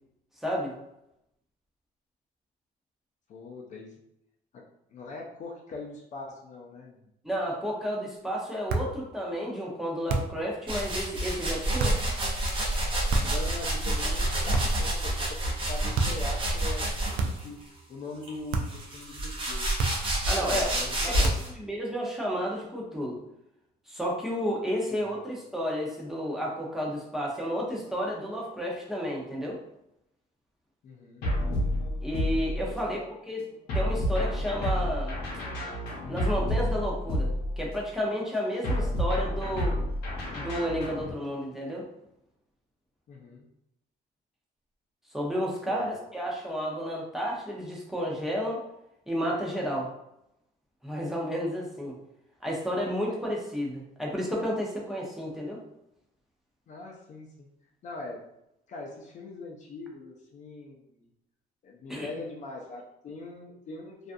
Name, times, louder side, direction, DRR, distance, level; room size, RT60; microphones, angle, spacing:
voice 1, 0.4-0.7 7.2-12.0 20.3-20.7 21.1-21.3 21.6-23.2 23.9-29.6 32.0-33.4 33.7-35.2 36.1-37.3 37.6-39.8 40.3-41.8 45.1-48.6 49.1-49.9 50.8-51.9 52.4-55.6 61.9-62.1, equal, ahead, -3 dB, 0.7 m, -31 dB
voice 2, 3.3-3.9 4.5-4.6 4.9-7.0 13.2-15.1 15.4-17.6 17.9-19.7 20.4-21.6 24.9-25.1 30.8-31.3 32.6-33.0 43.1-43.5 45.7-46.0 53.1-53.2 56.7-57.5 57.8-58.2 58.7-61.1 61.6-64.1, left 3 dB, 45° left, 0 dB, 0.4 m, -42 dB
sound 1, 8.7-9.0 10.1-10.5 11.8-12.1 13.1-13.5 14.5-14.9 15.9-16.3 17.2-17.6 18.5-18.9 19.8-20.2 21.2-21.6, right 3 dB, 70° right, 0.4 m, -29 dB
sound 2, 10.7-17.5 18.2-21.5, right 1 dB, 30° right, 0.7 m, -29 dB
sound 3, 31.2-32.9 33.7-37.9 38.6-41.1, equal, 85° left, 0.7 m, -30 dB
2.4 x 2.3 x 2.5 m, 0.81 s
cardioid pair, 110°, 17 cm